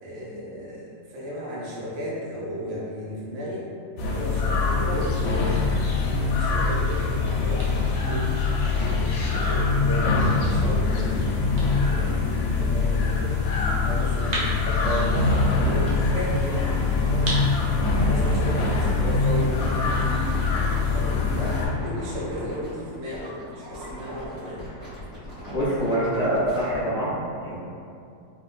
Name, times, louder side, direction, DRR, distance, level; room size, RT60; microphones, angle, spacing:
voice 1, 0.0-3.7 4.0-5.8 6.2-8.3 8.7-11.4 11.8-13.4 13.8-15.1 15.5-17.3 18.0-19.9 20.8-21.5 21.8-24.7, equal, 90° right, -6 dB, 1.5 m, -34 dB
sound 1, 4.0-21.7, left 3 dB, 85° left, 1.3 m, -23 dB
sound 2, 6.7-20.2, right 1 dB, 70° right, 0.7 m, -40 dB
sound 3, 15.3-26.8, equal, 20° left, 0.8 m, -38 dB
voice 2, 25.5-27.6, right 1 dB, 65° left, -14 dB, 0.6 m, -25 dB
3.7 x 2.1 x 2.3 m, 2.4 s
omnidirectional pair, 2.1 m